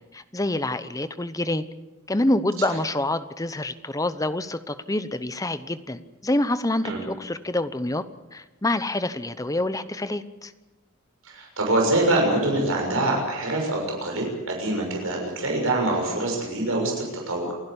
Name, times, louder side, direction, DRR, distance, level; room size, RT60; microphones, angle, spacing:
voice 1, 0.1-1.6 2.1-8.0 8.3-10.5, left 1 dB, 15° left, 13 dB, 0.9 m, -27 dB
voice 2, 11.2-17.5, right 2 dB, 65° right, 0 dB, 6.6 m, -25 dB
28.5 x 11.5 x 10.0 m, 1.1 s
head